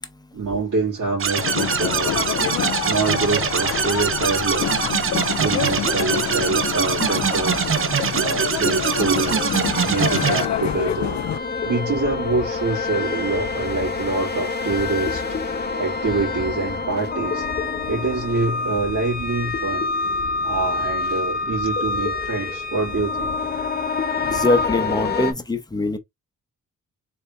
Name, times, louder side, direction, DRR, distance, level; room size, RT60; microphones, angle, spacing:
voice 1, 0.3-4.9 5.4-7.7 8.2-11.2 11.6-17.5 17.9-19.9 20.4-23.3, right 3 dB, 80° right, 2.7 m, -26 dB
sound 1, 1.2-10.5, right 7 dB, 40° right, 0.6 m, -23 dB
sound 2, 1.4-11.4, left 11 dB, 60° left, 0.5 m, -27 dB
sound 3, 9.2-25.3, left 4 dB, 30° left, 1.1 m, -27 dB
voice 2, 24.2-26.0, left 2 dB, 10° left, 0.8 m, -23 dB
4.1 x 3.4 x 3.2 m
wide cardioid pair, 115°, 33 cm